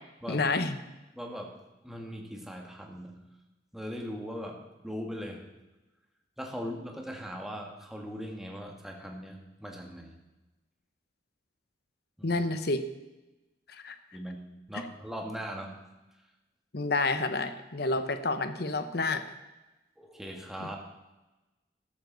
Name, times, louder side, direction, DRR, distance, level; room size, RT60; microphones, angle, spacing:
voice 1, 0.3-0.8 12.2-12.8 13.7-14.0 16.7-19.2 20.6-20.7, left 3 dB, 60° left, 9 dB, 1.0 m, -29 dB
voice 2, 1.1-3.2 3.7-5.4 6.4-10.2 12.2-12.4 14.1-15.8 20.0-20.8, equal, ahead, 0 dB, 1.7 m, -40 dB
13.5 x 13.0 x 4.0 m, 1.1 s
head